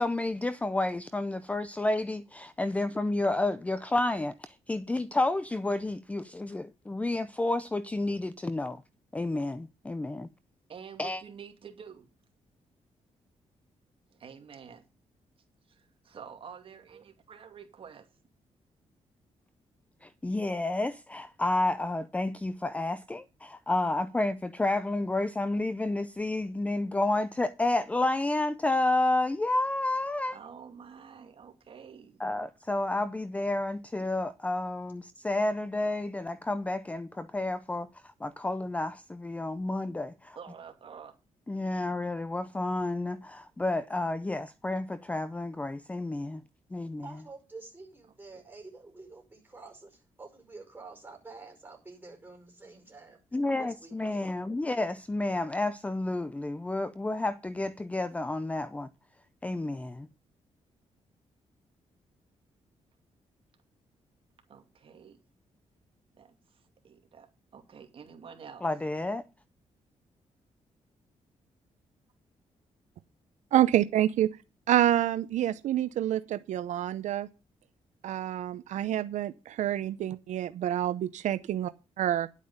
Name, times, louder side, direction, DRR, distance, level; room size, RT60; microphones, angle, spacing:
voice 1, 0.0-8.8 9.1-10.3 11.0-11.2 20.0-30.4 32.2-40.4 41.5-46.4 46.7-47.1 53.3-58.9 59.4-60.1 68.6-69.2, left 2 dB, 10° left, 0.5 m, -30 dB
voice 2, 10.7-12.1 14.1-14.8 15.7-18.1 30.3-32.2 40.3-41.1 64.5-65.2 66.1-66.3 66.8-68.7, right 7 dB, 50° right, 2.5 m, -48 dB
voice 3, 47.0-53.2 53.6-54.8, right 3 dB, 15° right, 5.2 m, -49 dB
voice 4, 73.5-74.3 74.7-77.3 78.0-81.7 82.0-82.3, right 12 dB, 85° right, 0.6 m, -27 dB
11.0 x 8.3 x 5.4 m
cardioid pair, 140°, 12 cm